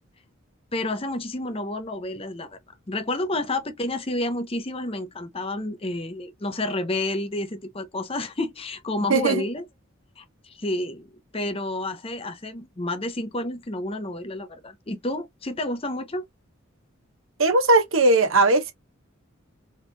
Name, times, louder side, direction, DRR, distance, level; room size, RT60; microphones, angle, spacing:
voice 1, 0.7-2.6 2.9-9.6 10.2-11.1 11.3-16.2, left 2 dB, 30° left, 0.7 m, -30 dB
voice 2, 17.4-18.7, right 2 dB, 90° right, 1.1 m, -18 dB
4.4 x 3.2 x 2.2 m
head